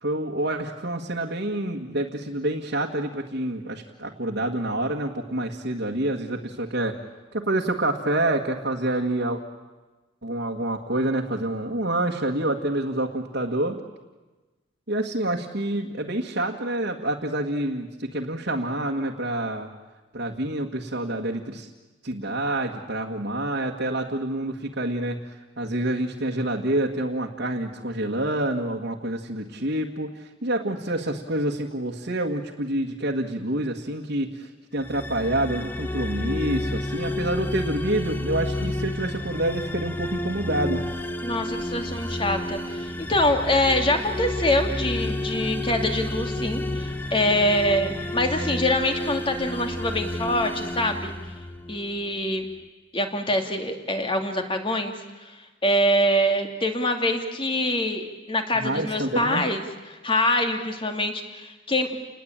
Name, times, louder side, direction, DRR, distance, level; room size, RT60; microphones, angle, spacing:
voice 1, 0.0-7.0 7.3-9.4 10.2-13.8 14.9-19.7 20.1-21.7 22.0-40.8 58.5-59.4, right 1 dB, 65° right, -1 dB, 1.8 m, -27 dB
sound 1, 34.8-51.9, left 1 dB, 10° left, 1.3 m, -30 dB
voice 2, 41.2-51.1 51.7-52.5 52.9-54.9 55.2-59.6 59.9-62.0, left 1 dB, 30° left, 5 dB, 2.5 m, -25 dB
29.5 x 20.5 x 9.0 m, 1.2 s
head